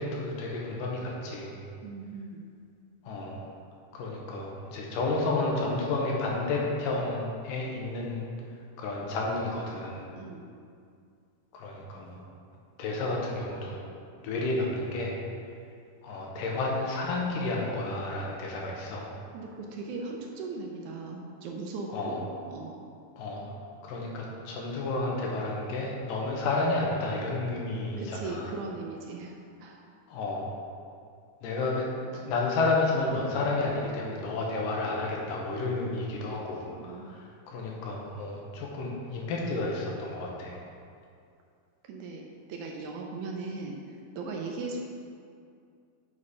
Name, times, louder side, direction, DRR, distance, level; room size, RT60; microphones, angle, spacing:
voice 1, 0.0-1.5 3.0-3.4 3.9-8.3 8.8-10.1 11.5-12.2 12.8-13.8 14.2-15.1 16.0-19.1 21.9-22.2 23.2-23.4 23.8-28.5 30.1-30.5 31.4-40.6, left 2 dB, 80° left, -2 dB, 2.6 m, -31 dB
voice 2, 1.8-2.5 10.1-10.5 19.3-22.8 28.0-29.8 35.9-36.0 36.8-37.2 41.8-42.2 42.5-44.8, right 3 dB, 75° right, 1 dB, 1.9 m, -38 dB
7.5 x 4.2 x 4.8 m, 2.3 s
omnidirectional pair, 3.8 m